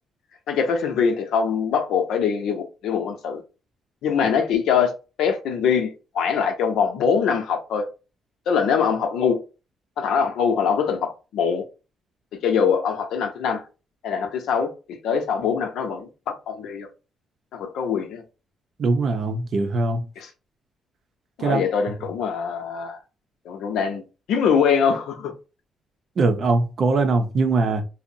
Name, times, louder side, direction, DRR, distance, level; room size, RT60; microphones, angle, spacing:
voice 1, 0.5-3.4 4.0-4.9 5.2-7.9 8.5-9.4 10.0-11.6 12.4-13.6 14.0-16.1 16.5-16.9 17.5-18.2 20.2-20.3 21.4-23.0 23.5-24.0 24.3-25.3, left 6 dB, 80° left, 0.6 m, -23 dB
voice 2, 18.8-20.1 21.4-21.6 26.2-27.9, right 3 dB, 55° right, 0.5 m, -21 dB
2.7 x 2.0 x 2.6 m
cardioid pair, 90°, 0 cm